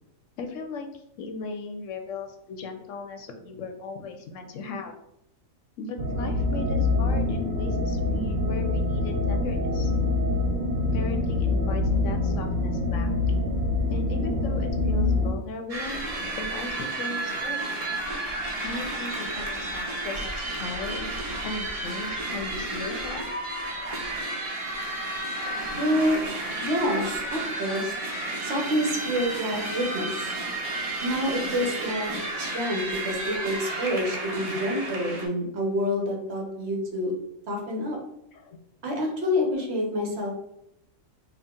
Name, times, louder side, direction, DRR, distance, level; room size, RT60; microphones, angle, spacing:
voice 1, 0.4-4.9 5.8-9.9 10.9-13.3 13.9-16.0 16.4-17.6 18.6-23.2 23.8-23.9 25.4-25.8 38.3-38.6, left 3 dB, 70° left, 5 dB, 0.9 m, -37 dB
sound 1, 6.0-15.3, left 2 dB, 80° right, 1.0 m, -25 dB
sound 2, 15.7-35.3, right 2 dB, 35° right, 0.6 m, -32 dB
voice 2, 25.8-26.2 26.6-27.9 28.4-30.3 31.0-32.1 32.4-37.1 37.5-38.0 38.8-40.4, equal, 55° right, 0 dB, 1.0 m, -27 dB
4.0 x 2.3 x 3.6 m, 0.78 s
omnidirectional pair, 1.4 m